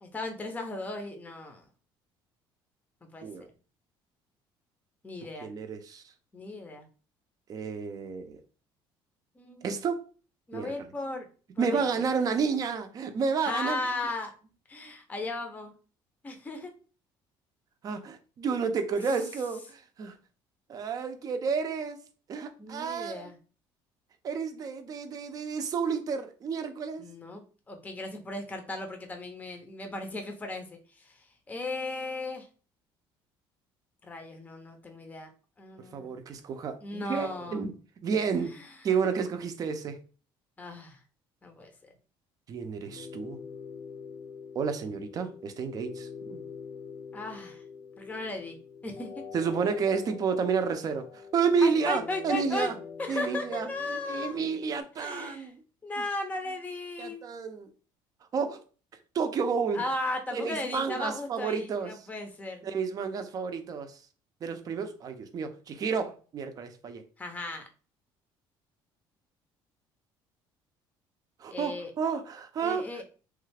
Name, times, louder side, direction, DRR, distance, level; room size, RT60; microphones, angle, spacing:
voice 1, 0.0-1.6 3.1-3.2 5.0-5.5 6.3-6.9 9.4-9.6 10.5-11.3 11.6-12.0 13.4-14.3 14.7-15.7 16.2-16.7 22.6-23.4 27.0-30.8 31.1-31.2 31.5-32.5 34.0-35.3 35.6-36.1 36.8-37.6 38.5-38.7 40.6-41.0 41.4-41.7 47.1-47.6 48.0-48.6 48.8-49.1 51.6-52.7 53.0-54.4 55.0-55.5 55.8-57.2 59.7-62.6 67.2-67.7 71.5-71.9 72.6-73.0, left 2 dB, 15° left, 0.6 m, -36 dB
voice 2, 5.4-6.0 7.5-8.4 9.6-10.1 10.5-10.7 11.6-13.8 17.8-20.1 20.7-22.0 22.3-23.3 24.2-27.0 35.9-37.7 38.0-38.5 38.8-40.0 42.5-43.4 44.5-46.4 49.3-51.1 51.3-52.8 53.1-55.6 57.0-57.7 58.3-58.6 59.1-59.8 60.3-61.9 62.6-64.0 64.4-67.0 71.4-73.0, right 5 dB, 40° right, 0.5 m, -31 dB
sound 1, 42.8-54.8, left 6 dB, 80° left, 0.8 m, -45 dB
3.2 x 2.3 x 3.3 m
cardioid pair, 130°, 9 cm